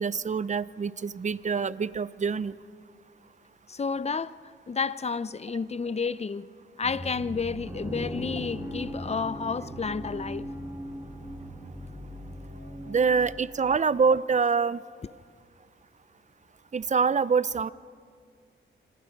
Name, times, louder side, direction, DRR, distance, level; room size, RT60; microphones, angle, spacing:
voice 1, 0.0-2.5 12.9-14.8 16.7-17.7, right 5 dB, 35° right, 0.6 m, -25 dB
voice 2, 3.7-4.4 4.7-6.5 6.8-10.5, left 5 dB, 30° left, 0.6 m, -31 dB
sound 1, 6.8-13.4, equal, 10° right, 7.2 m, -38 dB
27.5 x 26.0 x 5.3 m
cardioid pair, 85°, 21 cm